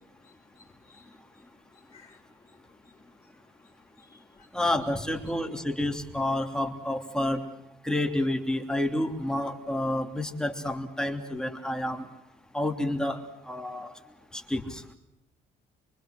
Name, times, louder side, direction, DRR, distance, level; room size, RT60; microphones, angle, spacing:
voice 1, 0.2-1.1 1.7-2.2 2.5-2.6 2.8-2.9 4.0-4.5, left 4 dB, 25° left, -4 dB, 3.0 m, -58 dB
voice 2, 4.5-7.4 7.8-12.1 12.5-13.9 14.3-14.8, left 1 dB, 5° left, 3 dB, 3.1 m, -29 dB
24.5 x 24.5 x 6.5 m, 0.90 s
cardioid pair, 110°, 17 cm